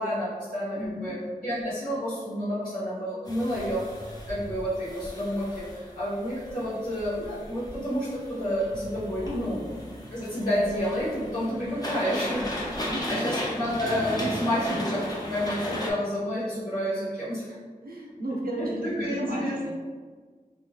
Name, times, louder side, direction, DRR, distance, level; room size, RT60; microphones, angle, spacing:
voice 1, 0.0-1.1 1.4-9.6 10.1-17.5 18.6-19.6, equal, 65° left, -12 dB, 1.2 m, -30 dB
voice 2, 0.7-1.3 9.2-9.9 12.8-13.4 17.8-19.7, equal, 85° right, -2 dB, 0.7 m, -34 dB
sound 1, 3.3-15.9, left 1 dB, 25° left, 0.7 m, -36 dB
3.5 x 2.9 x 2.4 m, 1.5 s
wide cardioid pair, 50°, 15 cm